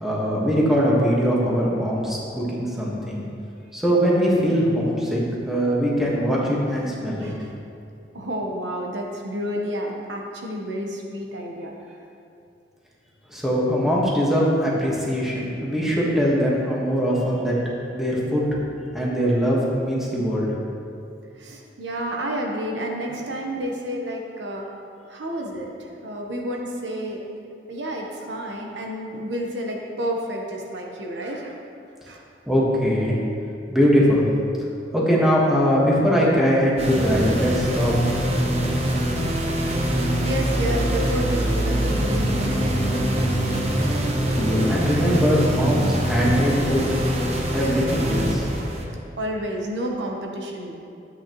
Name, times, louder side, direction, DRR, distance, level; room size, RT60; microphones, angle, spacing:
voice 1, 0.0-3.2 3.7-7.3 13.3-17.6 17.9-18.4 18.9-20.6 32.4-33.2 33.7-34.3 34.9-37.9 44.4-46.8 47.5-48.4, equal, ahead, -5 dB, 1.5 m, -21 dB
voice 2, 7.2-7.5 8.1-12.0 21.3-24.7 25.1-27.2 27.7-31.6 32.1-32.2 39.9-43.2 49.2-50.8, equal, 75° right, 0 dB, 1.1 m, -30 dB
sound 1, 36.8-48.8, right 1 dB, 35° right, 0.9 m, -23 dB
11.0 x 8.4 x 3.1 m, 2.5 s
head